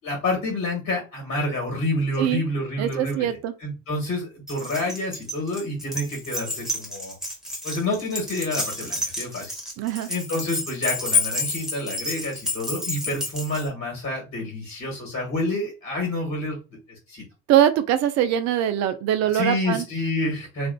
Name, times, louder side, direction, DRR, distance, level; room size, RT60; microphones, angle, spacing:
voice 1, 0.0-3.3 3.6-7.1 7.6-9.5 10.1-16.6 17.1-17.2 19.3-20.7, left 1 dB, 35° left, 1.4 m, -28 dB
voice 2, 2.8-3.5 9.8-10.1 17.5-19.8, right 11 dB, 45° right, 0.5 m, -22 dB
Keys jangling, 4.5-13.7, left 2 dB, ahead, 0.9 m, -29 dB
2.5 x 2.4 x 2.2 m
hypercardioid pair, 60°, 40 cm